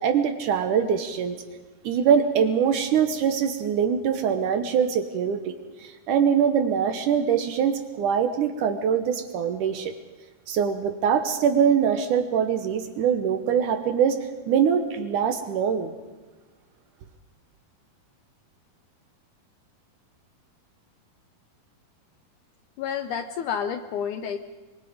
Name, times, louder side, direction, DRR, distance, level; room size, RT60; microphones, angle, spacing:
voice 1, 0.0-1.4 1.8-5.6 5.8-9.9 10.5-14.2 14.5-15.9, right 7 dB, 70° right, 7 dB, 2.3 m, -23 dB
voice 2, 22.8-24.4, left 7 dB, 75° left, 8 dB, 1.9 m, -29 dB
25.0 x 23.0 x 5.1 m, 1.3 s
omnidirectional pair, 4.3 m